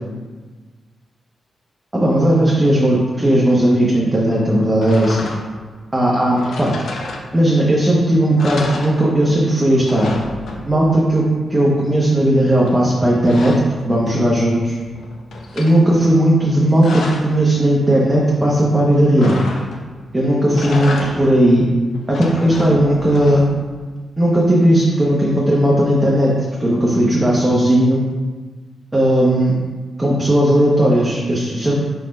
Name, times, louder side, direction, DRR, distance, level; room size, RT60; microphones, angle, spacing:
voice 1, 2.0-5.3 5.9-6.7 7.3-10.1 10.6-11.2 11.5-13.5 13.8-14.7 15.5-19.4 20.1-21.7 22.1-23.4 24.2-26.3 26.6-28.0 28.9-29.6 30.0-31.8, right 1 dB, 10° right, -5 dB, 1.0 m, -15 dB
sound 1, 4.8-5.7 6.4-7.6 8.0-8.1 8.4-9.4 9.7-11.0 12.7-14.4 14.8-15.8 16.4-17.4 19.2-20.0 20.4-21.5 21.9-23.7, left 2 dB, 70° left, 0.8 m, -30 dB
4.4 x 4.2 x 5.3 m, 1.4 s
wide cardioid pair, 125°, 0 cm